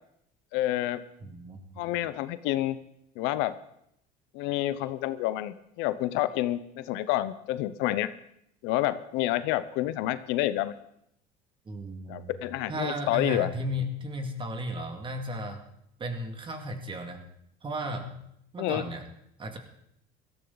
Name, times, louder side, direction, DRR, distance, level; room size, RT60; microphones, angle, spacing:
voice 1, 0.5-1.0 1.8-2.8 3.2-3.6 4.3-8.1 8.6-10.7 12.1-13.5 18.6-18.8, left 15 dB, 80° left, 14 dB, 0.8 m, -28 dB
voice 2, 1.2-1.6 11.7-12.3 12.7-15.6 16.0-17.2 17.6-18.2 18.5-19.0 19.4-19.6, equal, 25° right, 5 dB, 2.3 m, -34 dB
17.0 x 13.5 x 4.0 m, 0.75 s
supercardioid pair, 110°, 19 cm